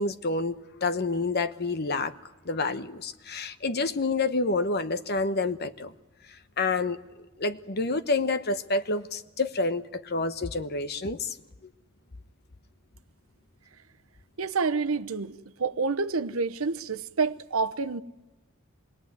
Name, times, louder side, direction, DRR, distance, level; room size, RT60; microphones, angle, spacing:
voice 1, 0.0-2.1 2.4-5.9 6.6-7.0 7.4-11.4, left 3 dB, 50° left, 1.0 m, -28 dB
voice 2, 14.4-15.3 15.6-18.0, right 4 dB, 75° right, 0.9 m, -28 dB
26.0 x 21.5 x 9.5 m
head